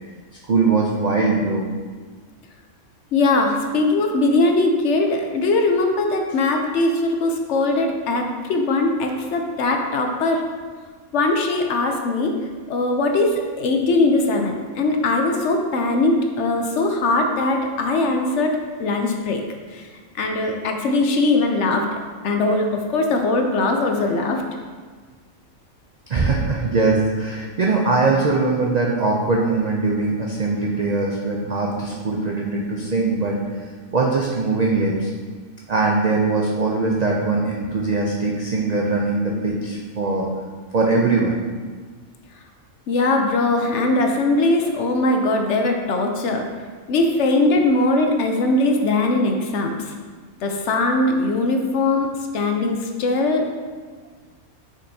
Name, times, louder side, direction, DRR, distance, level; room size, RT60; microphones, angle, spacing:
voice 1, 0.5-1.7 26.1-33.4 33.9-35.1 35.7-40.3 40.7-41.4, right 3 dB, 85° right, -1 dB, 0.3 m, -21 dB
voice 2, 3.1-10.4 11.1-12.4 12.7-19.4 19.7-19.9 20.2-24.4 42.9-46.4 46.9-49.8 50.4-53.5, left 2 dB, 65° left, 3 dB, 0.8 m, -20 dB
6.5 x 5.4 x 2.7 m, 1.5 s
omnidirectional pair, 1.5 m